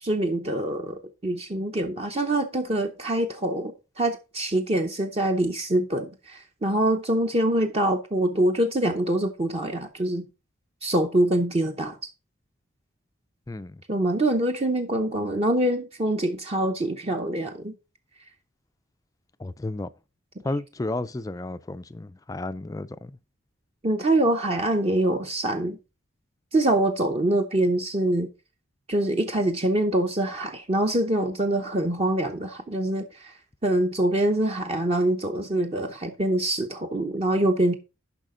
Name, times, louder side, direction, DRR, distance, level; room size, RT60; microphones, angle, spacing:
voice 1, 0.0-10.2 10.8-12.0 13.9-17.7 23.8-25.8 26.5-28.3 28.9-33.4 33.6-37.7, right 1 dB, 30° right, 0.7 m, -24 dB
voice 2, 13.5-13.8 19.4-19.9 20.4-23.2, left 2 dB, 15° left, 0.3 m, -32 dB
10.5 x 5.7 x 3.7 m
head